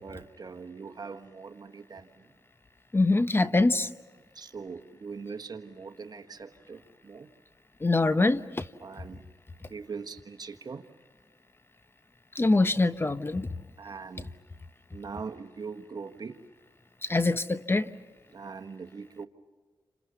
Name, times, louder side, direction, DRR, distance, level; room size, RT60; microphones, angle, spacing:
voice 1, 0.0-2.3 4.3-7.3 8.8-9.3 9.6-10.9 13.8-14.3 14.9-16.5 18.3-19.3, right 5 dB, 55° right, 1.5 m, -41 dB
voice 2, 2.9-3.9 7.8-8.7 12.3-13.5 17.0-17.9, left 2 dB, 30° left, 0.9 m, -24 dB
29.5 x 26.5 x 6.9 m
cardioid pair, 55°, 8 cm